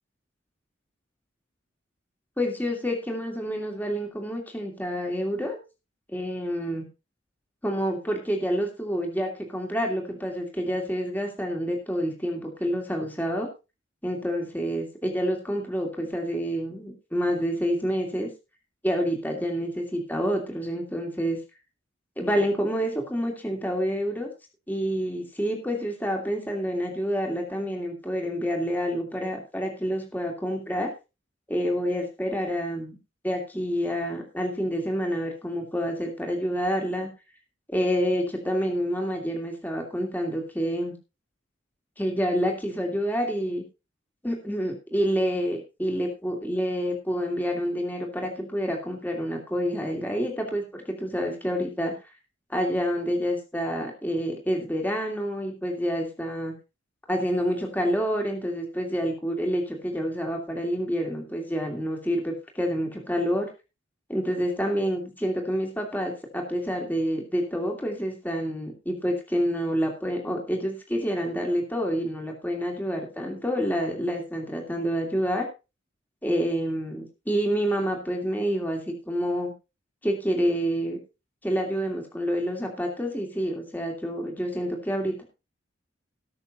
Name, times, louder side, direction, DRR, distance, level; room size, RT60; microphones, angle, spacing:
voice 1, 2.4-5.6 6.1-6.9 7.6-13.5 14.0-18.3 18.8-21.4 22.2-24.3 24.7-30.9 31.5-33.0 33.2-37.1 37.7-40.9 42.0-43.6 44.2-51.9 52.5-56.5 57.1-63.5 64.1-75.5 76.2-79.5 80.0-81.0 81.4-85.2, equal, 10° left, 1 dB, 2.7 m, -28 dB
19.0 x 6.6 x 4.0 m, 0.29 s
head